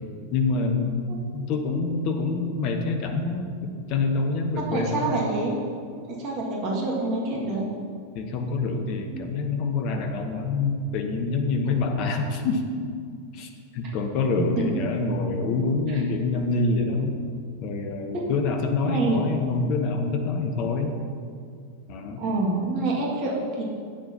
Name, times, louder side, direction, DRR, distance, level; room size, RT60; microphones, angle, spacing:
voice 1, 0.3-5.1 8.1-12.6 13.3-17.2 17.6-20.9 21.9-22.2, left 3 dB, 40° left, 4 dB, 0.9 m, -26 dB
voice 2, 4.5-5.6 6.0-7.6 9.1-9.2 14.4-14.8 15.9-16.0 18.1-18.3 18.9-19.2 22.2-23.6, right 2 dB, 40° right, -3 dB, 1.9 m, -27 dB
11.5 x 9.0 x 2.8 m, 2.1 s
figure-of-eight pair, 90°, 0 cm